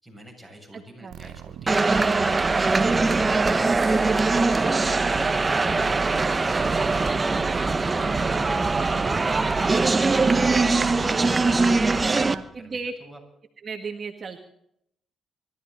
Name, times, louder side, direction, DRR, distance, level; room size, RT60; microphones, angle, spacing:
voice 1, 0.0-4.5 7.0-13.2, right 1 dB, ahead, 2 dB, 7.6 m, -45 dB
voice 2, 0.7-1.2 5.6-5.8 12.2-12.9 13.6-14.4, right 4 dB, 40° right, 4 dB, 1.8 m, -35 dB
sound 1, 1.1-12.6, right 9 dB, 80° right, 0.6 m, -39 dB
sound 2, 1.7-12.3, right 3 dB, 25° right, 0.9 m, -22 dB
24.0 x 13.5 x 4.1 m, 0.72 s
cardioid pair, 90°, 0 cm